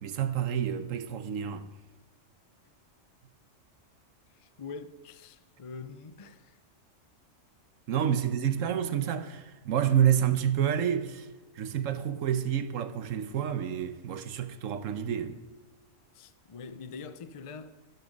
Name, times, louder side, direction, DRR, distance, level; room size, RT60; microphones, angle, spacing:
voice 1, 0.0-1.7 7.9-11.3 11.6-15.4, right 9 dB, 90° right, 1.2 m, -28 dB
voice 2, 4.3-6.6 16.1-17.8, left 5 dB, 40° left, 0.5 m, -44 dB
12.0 x 12.0 x 5.3 m
omnidirectional pair, 1.3 m